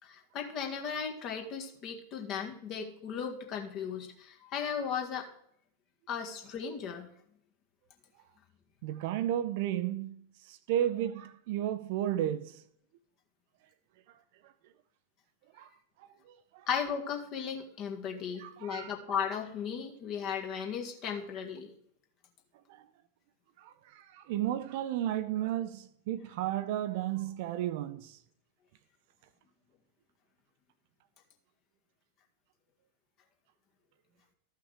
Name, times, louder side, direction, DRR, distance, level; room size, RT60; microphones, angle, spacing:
voice 1, 0.0-5.3 6.1-7.0 16.7-21.7, left 7 dB, 35° left, 1.7 m, -36 dB
voice 2, 8.8-12.6 15.6-15.7 16.3-16.7 18.4-18.9 23.6-28.2, right 12 dB, 50° right, 0.6 m, -33 dB
13.5 x 5.7 x 4.9 m
figure-of-eight pair, 90°, 0 cm